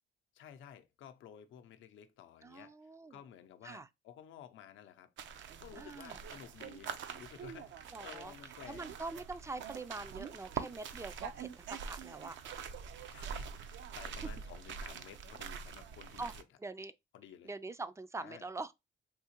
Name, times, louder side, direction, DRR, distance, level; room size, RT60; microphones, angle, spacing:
voice 1, 0.3-2.8 3.1-5.1 5.6-8.9 13.1-16.4 17.1-17.5 18.2-18.5, left 9 dB, 75° left, 0.6 m, -53 dB
voice 2, 2.4-3.2 3.6-3.9 5.8-6.2 7.9-8.3 8.7-12.4 14.2-14.3 16.2-16.3 16.6-16.9 17.4-18.7, right 3 dB, 15° right, 0.3 m, -44 dB
sound 1, 5.2-16.4, right 7 dB, 70° right, 0.5 m, -45 dB
3.6 x 2.8 x 2.9 m
cardioid pair, 90°, 20 cm